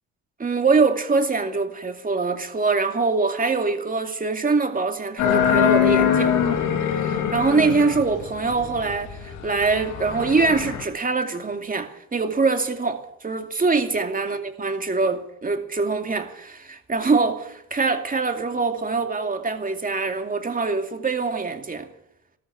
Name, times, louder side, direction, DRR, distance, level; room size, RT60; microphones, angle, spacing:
voice 1, 0.4-6.4 6.8-21.9, right 4 dB, 30° right, 2.5 m, -23 dB
sound 1, 5.2-10.8, left 9 dB, 90° left, 2.7 m, -23 dB
16.5 x 13.5 x 6.2 m
cardioid pair, 90°, 30 cm